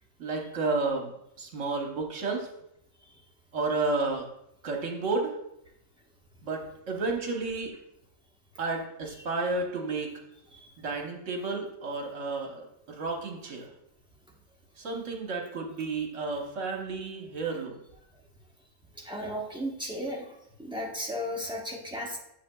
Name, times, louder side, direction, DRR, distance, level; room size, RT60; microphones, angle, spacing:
voice 1, 0.2-1.1 1.4-2.5 3.5-4.3 4.6-5.3 6.4-7.7 8.6-10.1 10.8-13.7 14.8-17.8, right 3 dB, 70° right, 1 dB, 1.4 m, -31 dB
voice 2, 19.0-20.2 20.6-22.2, equal, 5° right, -3 dB, 0.9 m, -34 dB
8.4 x 7.0 x 2.3 m, 0.80 s
omnidirectional pair, 1.3 m